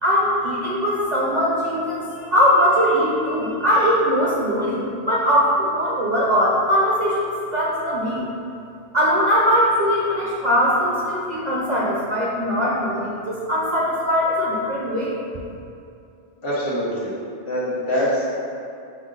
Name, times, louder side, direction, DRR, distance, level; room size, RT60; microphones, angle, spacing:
voice 1, 0.0-8.3 8.9-15.2, equal, 50° right, -6 dB, 0.6 m, -20 dB
voice 2, 16.4-17.1 17.5-18.4, equal, 55° left, -8 dB, 1.3 m, -24 dB
5.6 x 2.0 x 3.7 m, 2.6 s
omnidirectional pair, 1.1 m